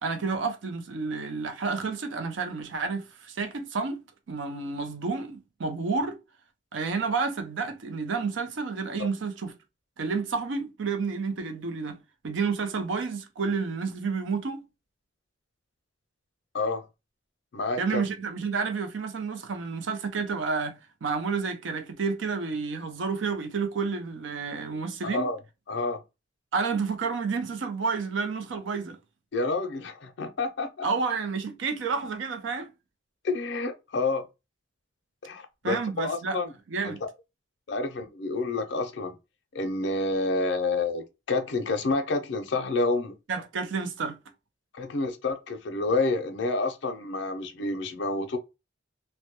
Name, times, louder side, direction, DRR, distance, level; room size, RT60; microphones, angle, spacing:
voice 1, 0.0-4.0 4.3-6.2 6.7-9.5 10.0-12.0 12.2-14.6 17.8-25.3 26.5-29.0 30.8-32.7 35.6-36.4 36.7-37.0 43.3-44.2, right 4 dB, 75° right, 0.5 m, -30 dB
voice 2, 16.5-16.9 17.5-18.0 25.0-25.4 25.7-26.0 29.3-30.9 33.2-34.3 35.2-36.5 36.8-36.9 37.7-39.1 39.5-43.1 44.7-48.4, left 3 dB, 60° left, 0.4 m, -29 dB
2.2 x 2.1 x 2.8 m
head